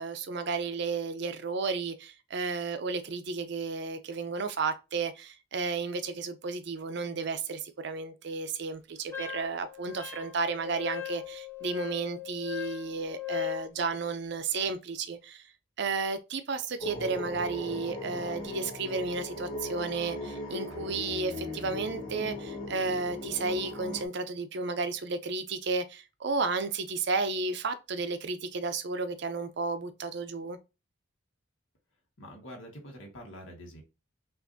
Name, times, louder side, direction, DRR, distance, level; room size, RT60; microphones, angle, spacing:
voice 1, 0.0-15.4 15.8-30.6, right 4 dB, 60° right, 0.5 m, -33 dB
Wind instrument woodwind instrument, 9.1-13.7, left 14 dB, 15° left, 0.6 m, -38 dB
sound 1, 16.8-24.1, left 1 dB, 35° left, 1.9 m, -38 dB
voice 2, 32.2-33.8, equal, 85° left, 1.5 m, -45 dB
5.7 x 2.6 x 2.6 m
head